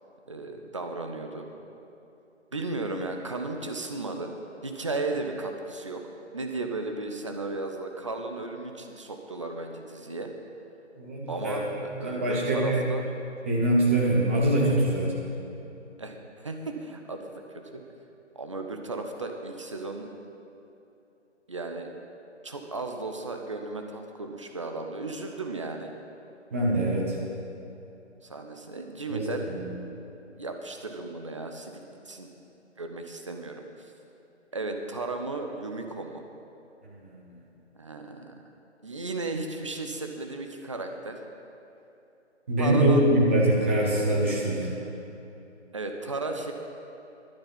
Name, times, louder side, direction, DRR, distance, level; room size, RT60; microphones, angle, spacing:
voice 1, 0.3-1.5 2.5-4.3 4.6-6.0 6.3-10.3 11.3-13.1 16.0-17.8 18.3-20.1 21.5-21.9 22.4-25.9 28.2-29.5 30.4-32.3 32.8-33.9 34.5-36.2 37.8-38.4 38.8-41.2 42.6-43.1 45.7-46.5, right 3 dB, 25° right, 4 dB, 0.8 m, -35 dB
voice 2, 11.0-11.6 12.0-12.8 13.4-15.1 26.5-27.1 29.1-29.6 36.8-37.2 42.5-44.7, right 1 dB, 10° right, -4 dB, 1.0 m, -24 dB
12.5 x 12.0 x 5.4 m, 2.9 s
figure-of-eight pair, 150°, 36 cm